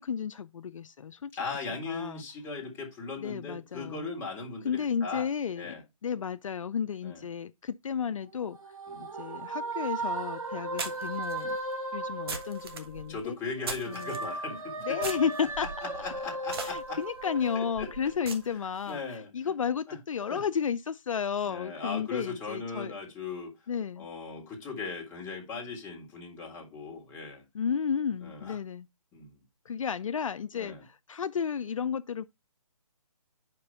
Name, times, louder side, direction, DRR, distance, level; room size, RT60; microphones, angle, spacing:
voice 1, 0.0-1.3 1.9-2.2 3.2-4.1 4.6-5.7 6.0-8.6 9.0-11.6 11.9-13.4 13.9-14.1 14.9-15.7 16.6-22.9 23.7-24.1 27.5-28.9 29.7-32.3, left 7 dB, 65° left, 0.4 m, -32 dB
voice 2, 1.4-5.3 5.6-5.8 7.0-7.2 8.9-9.1 10.8-10.9 13.1-15.0 15.9-17.0 17.5-17.9 18.8-19.5 19.9-20.0 20.3-20.4 21.5-23.5 24.0-27.4 28.2-28.6 29.1-29.4 30.5-30.8, left 4 dB, 15° left, 1.8 m, -38 dB
sound 1, 8.2-13.2 13.6-18.3, right 2 dB, 75° right, 2.3 m, -37 dB
sound 2, 9.7-9.8 10.8-14.3 15.0-18.9, right 5 dB, 45° right, 1.2 m, -41 dB
5.2 x 4.8 x 5.4 m
figure-of-eight pair, 150°, 18 cm